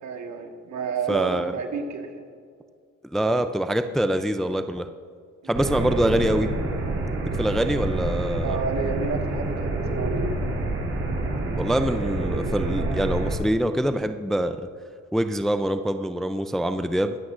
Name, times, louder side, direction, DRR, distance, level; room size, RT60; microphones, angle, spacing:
voice 1, 0.0-2.3 5.4-5.6 8.4-10.4, right 5 dB, 65° right, 3 dB, 1.6 m, -31 dB
voice 2, 1.1-1.5 3.1-4.9 5.4-6.5 7.3-8.6 11.6-14.6 15.1-17.2, right 1 dB, ahead, 8 dB, 0.4 m, -24 dB
sound 1, 5.5-13.4, right 2 dB, 45° right, 3.2 m, -27 dB
23.5 x 8.2 x 2.6 m, 2.1 s
cardioid pair, 90°, 30 cm